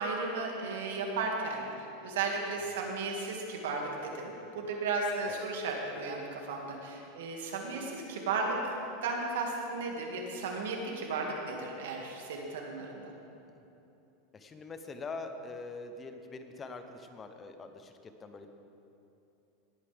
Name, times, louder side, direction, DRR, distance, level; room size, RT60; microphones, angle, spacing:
voice 1, 0.0-13.1, right 3 dB, 90° right, 0 dB, 2.1 m, -35 dB
voice 2, 2.6-2.9 5.2-5.5 14.3-18.5, left 3 dB, 20° left, 7 dB, 0.8 m, -44 dB
18.5 x 9.6 x 3.5 m, 2.8 s
supercardioid pair, 140°, 0 cm